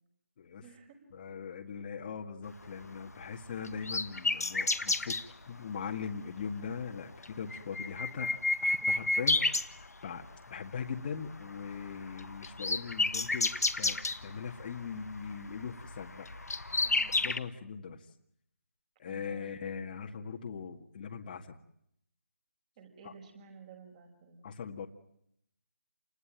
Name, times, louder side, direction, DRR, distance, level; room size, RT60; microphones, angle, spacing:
voice 1, 0.6-1.0 8.8-9.3 16.8-17.2 19.0-19.6 22.8-24.5, right 6 dB, 25° right, 6 dB, 6.0 m, -53 dB
voice 2, 1.1-5.2 5.5-16.3 17.2-18.1 19.0-21.6 23.0-23.1 24.4-24.9, left 6 dB, 35° left, 2 dB, 2.0 m, -40 dB
sound 1, 2.7-5.3 6.2-6.4 6.8-6.9 7.2-10.3 10.7-11.0 11.3-17.4, left 3 dB, 80° left, 1.7 m, -32 dB
29.0 x 21.0 x 9.1 m, 0.75 s
figure-of-eight pair, 160°, 8 cm